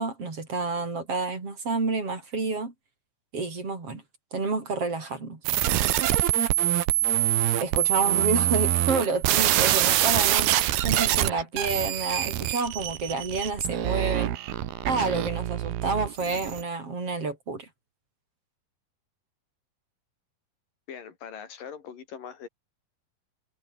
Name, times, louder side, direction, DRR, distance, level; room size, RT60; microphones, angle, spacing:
voice 1, 0.0-2.7 3.3-4.0 4.3-5.4 7.6-10.5 10.8-14.3 14.8-17.7, right 3 dB, 35° right, 6.2 m, -29 dB
sound 1, 5.5-16.6, right 13 dB, 80° right, 3.4 m, -25 dB
voice 2, 20.9-22.5, left 7 dB, 60° left, 4.2 m, -41 dB
omnidirectional pair, 4.4 m